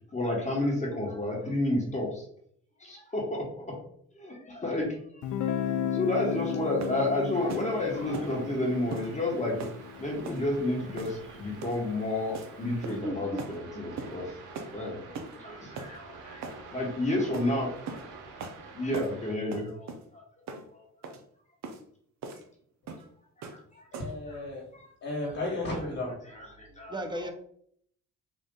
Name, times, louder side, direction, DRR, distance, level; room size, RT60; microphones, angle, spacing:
voice 1, 0.1-2.2 2.8-3.8 4.1-5.0 5.6-9.6 10.0-14.3 14.7-18.0 18.7-20.2 20.7-20.8 23.4-23.9 26.6-27.0, left 1 dB, 25° left, -2 dB, 1.2 m, -31 dB
Guitar, 5.2-11.0, left 9 dB, 75° left, 0.4 m, -35 dB
sound 1, 6.8-7.0 7.5-7.7 8.1-8.3 8.9-9.1 9.6-9.8 10.2-10.4 11.0-11.3 11.6-11.8 12.3-12.5 12.8-13.1 13.4-13.6 14.0-14.2 14.5-14.7 15.1-15.4 15.7-15.9 16.4-16.6 17.3-17.5 17.9-18.1 18.4-18.6 18.9-19.1 19.5-20.1 20.5-20.7 21.0-21.2 21.6-21.8 22.2-22.4 22.9-23.1 23.4-23.6 23.9-24.2, right 4 dB, 60° right, 0.7 m, -40 dB
sound 2, 7.3-19.4, right 4 dB, 90° right, 0.9 m, -48 dB
voice 2, 12.8-13.4 15.0-15.6 26.9-27.3, right 1 dB, 15° right, 6 dB, 0.6 m, -37 dB
voice 3, 23.9-24.7 25.0-26.5, left 2 dB, 55° left, -5 dB, 1.4 m, -34 dB
3.9 x 2.5 x 3.7 m, 0.65 s
cardioid pair, 90°, 30 cm